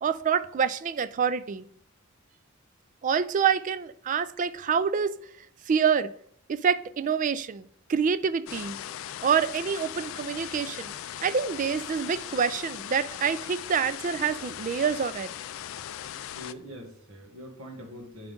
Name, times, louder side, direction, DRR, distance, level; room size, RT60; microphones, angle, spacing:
voice 1, 0.0-1.6 3.0-5.1 5.7-6.1 6.5-8.8 9.2-10.9 11.2-15.3, right 6 dB, 40° right, 0.3 m, -26 dB
sound 1, 8.5-16.5, left 11 dB, 70° left, 0.3 m, -39 dB
voice 2, 16.3-18.3, equal, 90° right, 1.6 m, -43 dB
8.2 x 3.5 x 5.2 m
head